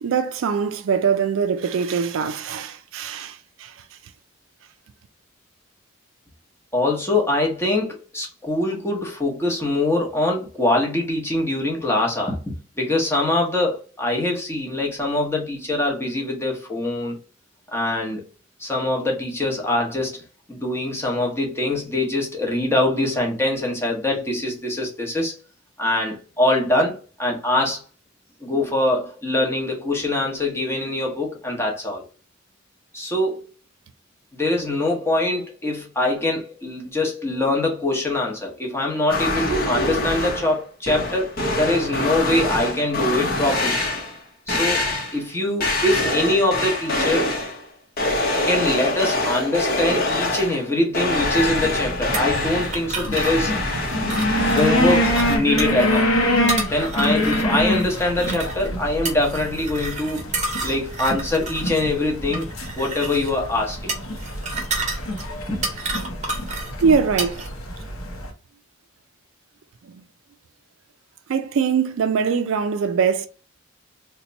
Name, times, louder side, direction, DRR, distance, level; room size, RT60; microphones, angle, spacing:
voice 1, 0.0-3.8 66.8-67.5 69.8-70.0 71.3-73.3, right 6 dB, 65° right, 0.3 m, -22 dB
voice 2, 6.7-12.4 12.8-17.2 17.7-18.2 18.6-20.2 20.5-25.4 25.8-27.8 28.4-32.0 32.9-33.5 34.3-43.8 44.5-44.9 45.1-47.3 48.4-53.6 54.4-56.1 56.7-60.3 60.6-62.5 62.8-63.9 65.5-65.6, left 1 dB, 10° left, 0.9 m, -23 dB
sound 1, 39.1-40.6 40.9-44.2 44.5-45.2 45.6-47.6 48.0-50.7 50.9-55.4, left 2 dB, 45° left, 0.8 m, -24 dB
sound 2, 51.2-68.3, equal, 70° left, 0.7 m, -26 dB
sound 3, 52.1-67.5, right 2 dB, 35° right, 0.9 m, -31 dB
2.8 x 2.2 x 3.9 m
head